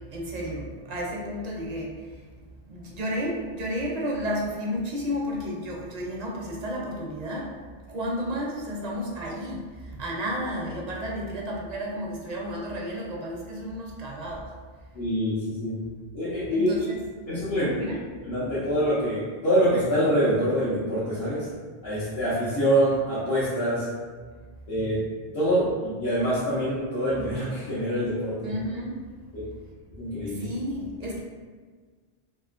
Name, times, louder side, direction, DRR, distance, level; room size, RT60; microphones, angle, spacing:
voice 1, 0.1-1.9 2.7-7.5 7.9-9.6 9.9-14.5 16.5-17.0 17.7-18.0 28.4-28.9 30.3-31.2, equal, 50° right, -3 dB, 0.6 m, -32 dB
voice 2, 14.9-15.8 16.1-16.7 17.3-17.7 18.2-21.5 21.8-23.9 24.7-25.0 25.3-28.5 29.3-29.4 30.0-30.4, equal, 85° left, -12 dB, 1.2 m, -25 dB
3.0 x 2.9 x 2.4 m, 1.5 s
omnidirectional pair, 1.0 m